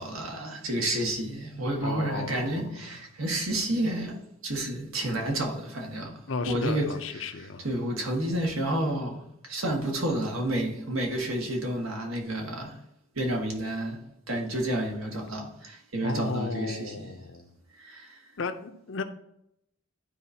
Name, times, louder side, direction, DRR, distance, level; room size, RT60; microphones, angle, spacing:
voice 1, 0.0-12.8 13.1-17.1 17.7-18.2, right 1 dB, 85° right, 1.6 m, -30 dB
voice 2, 1.8-2.6 6.3-7.6 16.0-17.5 18.4-19.0, left 4 dB, 65° left, 0.7 m, -34 dB
12.0 x 4.8 x 2.8 m
head